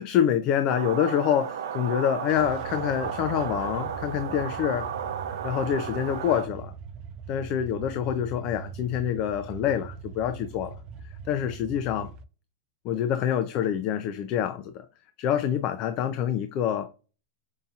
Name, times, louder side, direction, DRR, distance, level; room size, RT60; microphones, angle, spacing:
voice 1, 0.0-4.9 5.4-6.7 7.3-10.8 11.3-12.1 12.8-14.8 15.2-16.9, left 9 dB, 40° left, 0.4 m, -26 dB
sound 1, 0.7-6.5, right 8 dB, 80° right, 0.6 m, -34 dB
sound 2, 2.3-12.3, right 6 dB, 35° right, 0.4 m, -42 dB
5.4 x 2.7 x 2.4 m
supercardioid pair, 140°, 2 cm